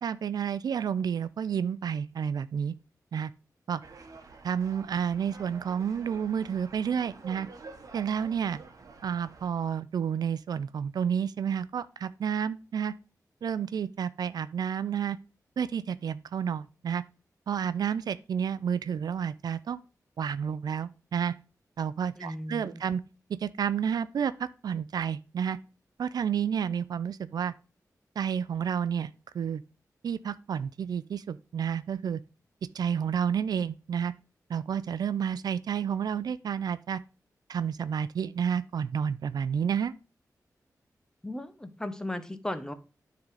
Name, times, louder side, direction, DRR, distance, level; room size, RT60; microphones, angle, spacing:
voice 1, 0.0-2.7 3.1-3.3 3.7-3.8 4.4-7.5 7.9-8.6 9.0-12.9 13.4-15.2 15.6-17.0 17.5-19.8 20.2-21.3 21.8-23.0 23.4-25.6 26.0-27.5 28.2-29.6 30.0-32.2 32.7-34.1 34.5-37.0 37.5-39.9, right 7 dB, 85° right, 0.4 m, -30 dB
sound 1, 3.8-9.5, right 3 dB, 65° right, 1.2 m, -49 dB
voice 2, 22.2-22.8 41.2-42.7, left 1 dB, 10° left, 0.9 m, -36 dB
9.6 x 3.9 x 4.8 m
wide cardioid pair, 90°, 7 cm